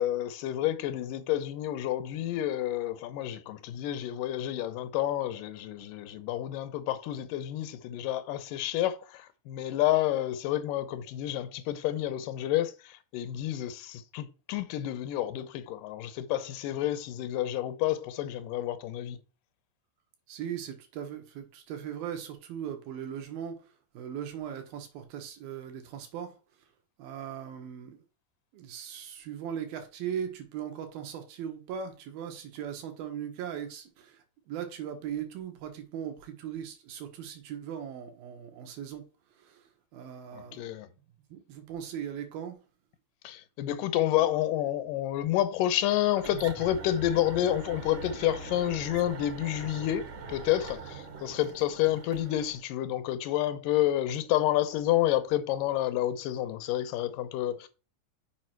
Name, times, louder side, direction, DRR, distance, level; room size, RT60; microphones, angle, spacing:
voice 1, 0.0-19.2 40.3-40.9 43.2-57.7, left 13 dB, 75° left, 2.4 m, -29 dB
voice 2, 20.3-23.6 23.9-26.3 27.0-28.0 28.5-39.0 39.4-39.6 39.9-40.7 41.3-42.6, right 9 dB, 80° right, 3.4 m, -39 dB
sound 1, 46.2-52.6, right 3 dB, 55° right, 1.5 m, -42 dB
7.3 x 5.5 x 4.5 m
omnidirectional pair, 4.2 m